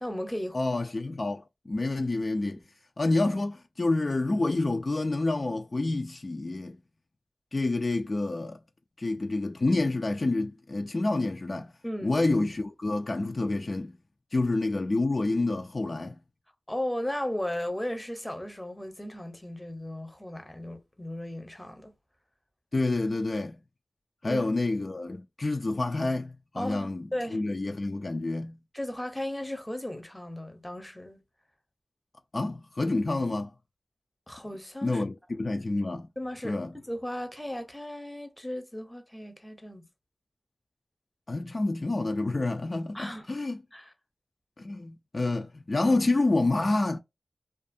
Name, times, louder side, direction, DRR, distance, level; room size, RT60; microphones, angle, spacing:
voice 1, 0.0-0.6 11.8-12.2 14.3-14.4 16.7-21.9 24.2-24.4 26.6-27.4 28.7-31.2 34.3-35.0 36.2-39.9 42.9-43.4 43.7-43.9, left 1 dB, 10° left, 0.7 m, -36 dB
voice 2, 0.5-2.6 3.0-6.8 7.5-8.6 9.0-11.7 12.0-13.9 14.3-16.2 22.7-23.6 24.2-28.6 32.3-33.5 34.8-36.1 36.4-36.7 41.3-43.6 44.6-47.0, left 2 dB, 45° left, 0.3 m, -28 dB
2.5 x 2.3 x 2.5 m
wide cardioid pair, 60°, 0 cm